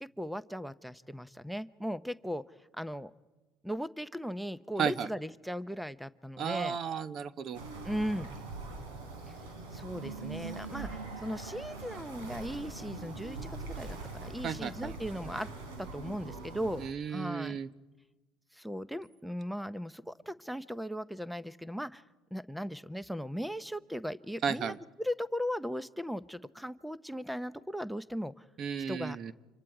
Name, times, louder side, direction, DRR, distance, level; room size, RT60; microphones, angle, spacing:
voice 1, 0.0-2.4 2.7-3.1 3.6-6.8 7.8-8.3 9.3-9.4 9.7-15.5 15.8-17.6 18.5-22.0 22.3-28.4 28.9-29.2, equal, ahead, 15 dB, 0.7 m, -38 dB
voice 2, 6.4-7.6 14.4-14.9 16.8-17.7 24.4-24.8 28.6-29.3, right 7 dB, 50° right, 14 dB, 0.9 m, -34 dB
sound 1, 7.5-16.9, right 3 dB, 85° right, 4.1 m, -42 dB
30.0 x 26.0 x 4.9 m, 1.2 s
supercardioid pair, 85°, 0 cm